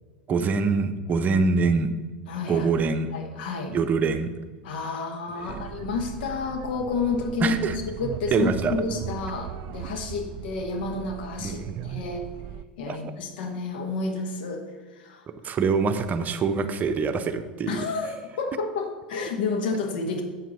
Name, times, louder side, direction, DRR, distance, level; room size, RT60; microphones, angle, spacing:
voice 1, 0.3-1.9 2.5-3.1 3.7-4.3 5.4-5.6 7.4-7.8 8.3-8.8 11.4-11.8 12.9-13.1 15.4-17.8, right 4 dB, 30° right, 9 dB, 0.7 m, -24 dB
voice 2, 2.3-2.7 3.1-3.8 4.6-11.6 11.8-12.3 12.8-14.7 14.9-15.3 17.7-20.2, left 4 dB, 70° left, 4 dB, 1.1 m, -30 dB
sound 1, 5.5-12.6, right 11 dB, 50° right, 0.3 m, -38 dB
7.8 x 7.4 x 4.1 m, 1.4 s
hypercardioid pair, 85°, 5 cm